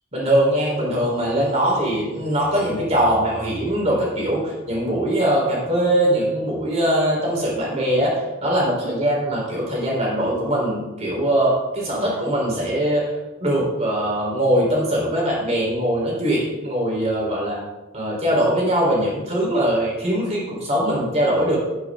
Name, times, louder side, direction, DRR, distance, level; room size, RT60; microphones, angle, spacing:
voice 1, 0.1-13.0 13.4-17.6 17.9-21.6, right 1 dB, 30° right, -3 dB, 4.1 m, -21 dB
11.0 x 9.5 x 3.8 m, 1.1 s
head